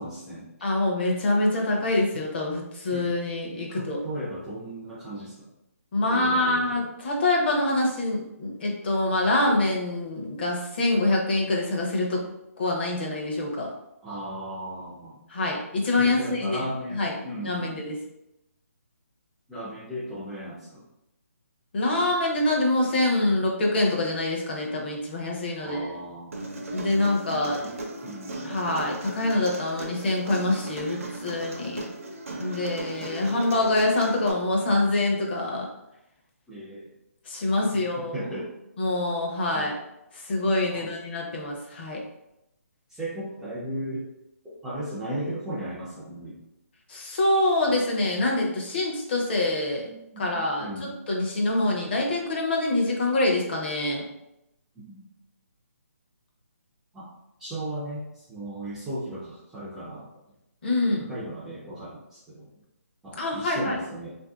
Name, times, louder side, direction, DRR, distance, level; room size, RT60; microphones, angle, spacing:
voice 1, 0.0-0.7 2.9-3.1 3.7-5.5 6.1-6.8 14.0-15.2 16.0-17.8 19.5-20.8 25.6-26.4 27.4-27.7 28.0-28.6 36.5-36.9 37.7-38.5 39.5-39.7 40.7-40.9 42.9-44.0 44.4-46.4 49.8-50.9 54.8-55.1 56.9-57.1 57.4-60.1 60.8-62.5 63.0-64.2, right 1 dB, 5° right, -10 dB, 0.3 m, -36 dB
voice 2, 0.6-4.0 5.9-12.2 12.6-13.7 15.3-16.6 16.9-17.1 17.4-18.0 21.7-25.8 26.7-27.6 28.4-31.8 32.4-35.7 37.3-38.1 38.8-39.8 40.1-42.0 46.9-49.9 50.2-50.7 51.1-54.0 60.6-61.0 63.2-63.8, left 2 dB, 40° left, -1 dB, 0.7 m, -25 dB
Human voice, 26.3-34.3, right 2 dB, 60° right, 0.6 m, -37 dB
3.0 x 2.6 x 2.3 m, 0.86 s
hypercardioid pair, 160°, 8 cm